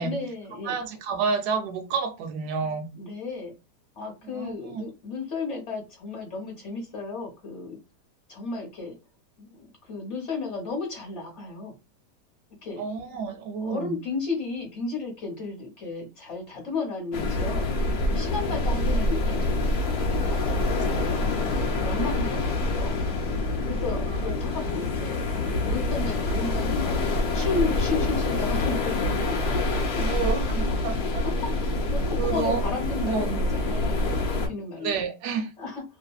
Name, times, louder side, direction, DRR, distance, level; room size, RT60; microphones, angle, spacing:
voice 1, 0.0-0.8 3.0-3.5 4.0-7.8 8.3-9.0 9.4-11.7 12.6-12.9 13.6-17.7 18.1-23.0 23.7-25.2 25.6-29.2 31.2-35.0 35.6-35.8, left 4 dB, 50° left, 1.0 m, -34 dB
voice 2, 0.6-2.9 4.2-4.8 12.8-13.9 18.7-18.8 24.5-24.7 30.0-31.2 32.2-32.6 33.0-33.4 34.8-35.5, right 5 dB, 75° right, 1.1 m, -29 dB
sound 1, 17.1-34.5, left 2 dB, 70° left, 1.1 m, -26 dB
2.7 x 2.5 x 2.3 m
omnidirectional pair, 1.8 m